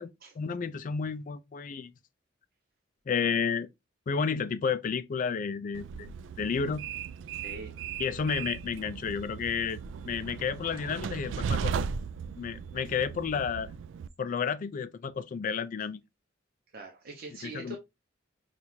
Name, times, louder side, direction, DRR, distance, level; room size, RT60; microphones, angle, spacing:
voice 1, 0.0-1.9 3.1-3.7 4.1-6.9 8.0-9.8 10.0-11.8 12.4-13.7 14.2-16.0 17.4-17.8, left 6 dB, 45° left, 0.3 m, -31 dB
Train, 5.7-14.1, right 6 dB, 70° right, 0.3 m, -37 dB
voice 2, 7.4-7.7 16.7-17.8, right 2 dB, 55° right, 0.7 m, -42 dB
5.8 x 2.4 x 2.7 m
head